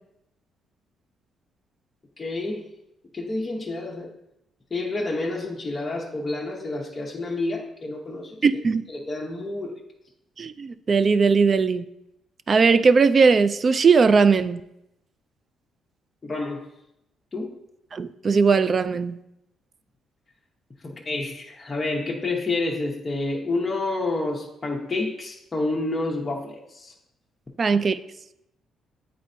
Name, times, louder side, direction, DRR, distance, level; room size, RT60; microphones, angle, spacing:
voice 1, 2.2-2.6 3.1-4.1 4.7-8.4 8.9-9.8 16.2-16.7 17.3-17.6 20.8-26.9, left 2 dB, 25° left, -2 dB, 0.8 m, -29 dB
voice 2, 8.4-8.8 10.4-11.8 12.5-14.6 17.9-19.2 27.6-28.0, right 5 dB, 40° right, 13 dB, 0.3 m, -19 dB
8.5 x 4.2 x 2.7 m, 0.84 s
cardioid pair, 90°, 0 cm